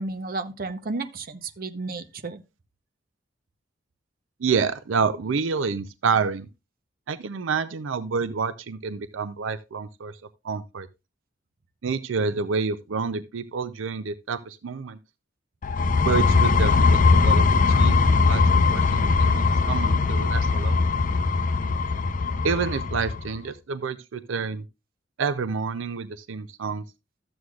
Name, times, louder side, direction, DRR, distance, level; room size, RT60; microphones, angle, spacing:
voice 1, 0.0-2.4, right 3 dB, 50° right, 0.8 m, -32 dB
voice 2, 4.4-6.5 7.1-10.2 10.4-10.9 11.8-15.0 16.0-17.5 17.7-20.8 22.4-24.6 25.2-26.8, right 5 dB, 85° right, 0.5 m, -28 dB
sound 1, 15.6-23.3, left 4 dB, 45° left, 0.6 m, -20 dB
13.0 x 7.9 x 2.4 m
head